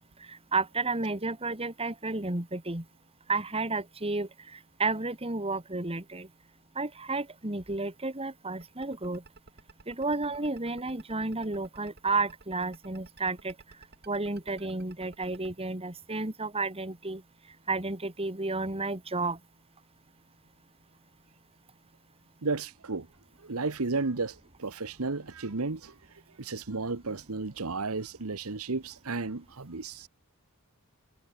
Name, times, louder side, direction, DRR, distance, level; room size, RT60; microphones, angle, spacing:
voice 1, 0.3-2.8 3.3-6.3 6.8-9.2 9.9-13.5 14.1-17.2 17.7-19.4, right 3 dB, 25° right, 2.4 m, -32 dB
sound 1, 8.6-15.5, right 3 dB, 50° right, 3.6 m, -53 dB
voice 2, 22.4-23.1 23.4-25.9 26.4-30.1, right 3 dB, 70° right, 1.2 m, -33 dB
head